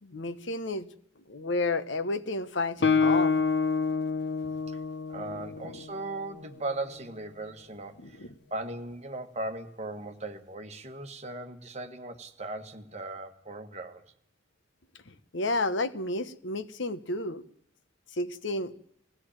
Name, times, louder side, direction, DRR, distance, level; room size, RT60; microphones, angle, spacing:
voice 1, 0.0-0.9 1.3-3.5 5.7-5.8 8.0-8.3 15.1-17.4 18.1-18.7, left 2 dB, 80° left, 1.1 m, -31 dB
Guitar, 2.8-6.5, left 4 dB, 60° left, 0.8 m, -27 dB
voice 2, 5.1-14.0, right 2 dB, 35° right, 1.6 m, -38 dB
20.5 x 16.5 x 8.9 m
head